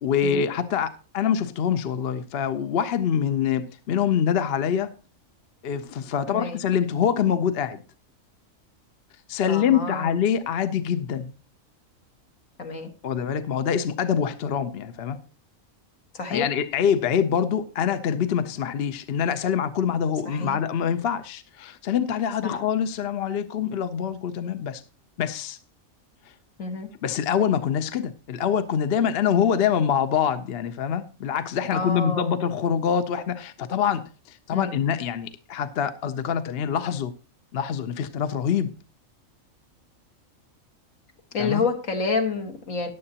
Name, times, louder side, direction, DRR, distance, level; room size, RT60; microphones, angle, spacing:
voice 1, 0.0-4.9 5.6-7.8 9.3-11.3 13.0-15.2 16.3-24.8 25.2-25.6 27.0-37.1 37.5-38.7 41.4-41.6, left 8 dB, 55° left, 0.8 m, -25 dB
voice 2, 6.3-6.6 9.5-10.1 12.6-12.9 16.1-16.5 20.3-20.6 22.4-22.6 26.6-26.9 31.7-32.4 34.5-34.8 41.3-42.9, left 4 dB, 75° left, 1.9 m, -28 dB
14.5 x 9.8 x 2.8 m
omnidirectional pair, 1.4 m